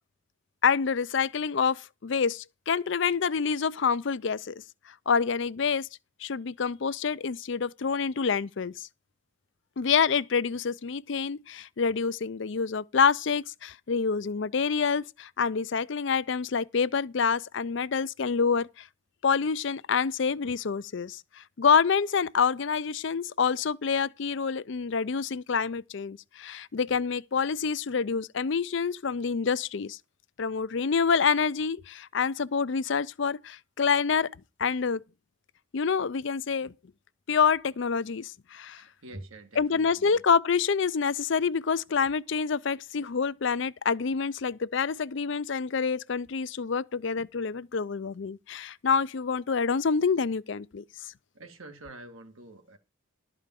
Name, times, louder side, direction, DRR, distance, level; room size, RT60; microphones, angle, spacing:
voice 1, 0.6-4.5 5.1-5.9 6.2-8.9 9.8-18.9 19.2-30.0 30.4-34.3 34.6-35.0 35.7-36.7 37.3-38.8 39.6-50.8, left 6 dB, 60° left, 0.5 m, -27 dB
voice 2, 38.8-40.2 51.3-52.8, right 2 dB, 80° right, 2.0 m, -46 dB
12.0 x 5.0 x 7.5 m
head